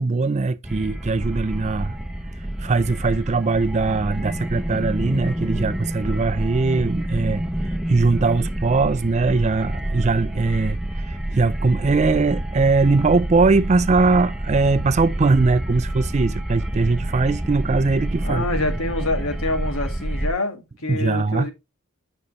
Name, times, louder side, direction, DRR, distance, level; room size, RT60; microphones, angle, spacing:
voice 1, 0.0-1.9 2.6-7.4 7.9-18.4 20.9-21.5, right 3 dB, 30° right, 0.4 m, -21 dB
sound 1, 0.6-20.3, right 1 dB, ahead, 0.7 m, -28 dB
voice 2, 18.2-21.5, left 2 dB, 80° left, 1.8 m, -26 dB
8.6 x 5.4 x 3.0 m
head